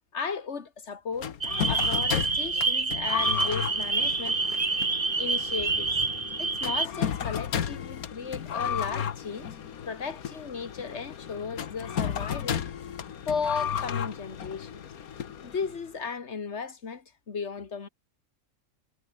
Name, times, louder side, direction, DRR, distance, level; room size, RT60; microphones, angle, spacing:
voice 1, 0.1-1.3 1.7-4.4 5.2-5.9 6.4-9.6 9.8-12.7 13.3-14.9 15.4-17.9, left 5 dB, 50° left, 2.1 m, -35 dB
sound 1, 1.2-15.9, left 8 dB, 80° left, 1.7 m, -34 dB
sound 2, 1.4-6.9, right 4 dB, 30° right, 1.5 m, -27 dB
omnidirectional pair, 1.5 m